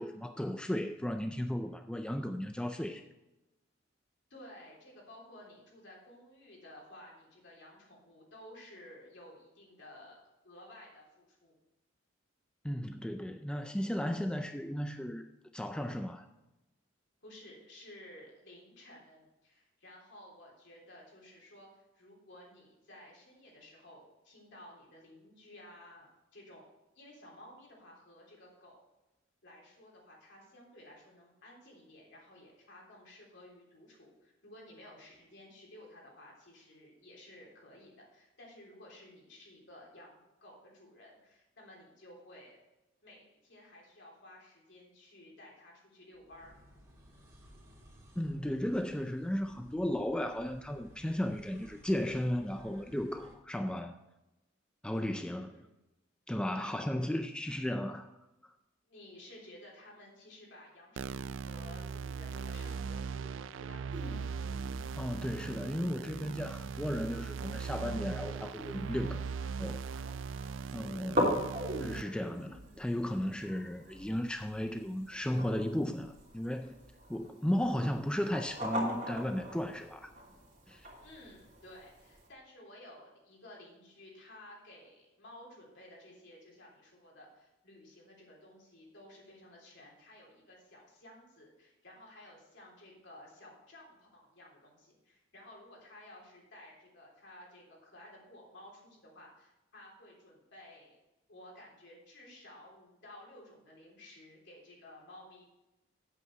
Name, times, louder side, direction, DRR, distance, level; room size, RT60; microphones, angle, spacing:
voice 1, 0.0-3.0 12.6-15.3 15.5-16.3 48.2-54.0 54.8-55.6 56.3-58.1 58.4-58.5 65.0-69.2 69.6-70.1 70.7-71.4 71.8-76.7 77.1-80.1 80.7-80.9, equal, 5° left, 6 dB, 0.4 m, -35 dB
voice 2, 4.3-11.6 17.2-28.8 29.4-42.6 43.0-46.6 55.5-55.6 56.5-57.1 58.9-64.3 81.0-101.0 101.3-105.4, left 1 dB, 65° left, -2 dB, 3.5 m, -54 dB
sound 1, 46.1-53.4, equal, 15° right, 2.6 m, -58 dB
sound 2, 61.0-72.0, right 5 dB, 70° right, 0.3 m, -39 dB
sound 3, 63.9-82.3, equal, 40° right, 2.9 m, -41 dB
8.7 x 8.0 x 4.6 m, 0.98 s
head